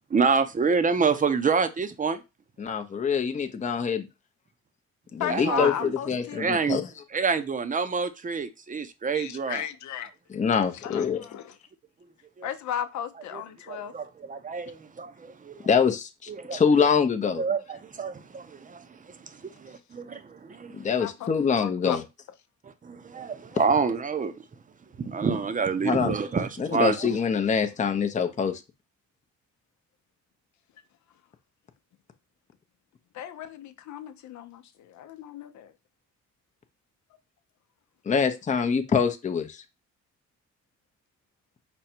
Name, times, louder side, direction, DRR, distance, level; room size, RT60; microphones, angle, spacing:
voice 1, 0.1-2.2 5.3-5.9 6.3-6.8 7.1-9.6 12.4-12.5 13.3-13.4 13.7-15.7 16.3-16.6 17.4-20.8 22.8-24.3 25.0-27.2, right 5 dB, 25° right, 0.7 m, -27 dB
voice 2, 2.6-4.1 5.1-6.8 10.3-11.2 15.7-17.4 20.7-22.0 25.8-26.1 26.6-28.6 38.1-39.6, left 6 dB, 25° left, 0.6 m, -25 dB
voice 3, 5.2-6.5 9.1-10.1 10.7-11.6 12.4-13.9 20.8-21.3 21.6-22.0 33.1-35.7, left 10 dB, 70° left, 0.7 m, -34 dB
5.2 x 2.3 x 4.3 m
cardioid pair, 90°, 30 cm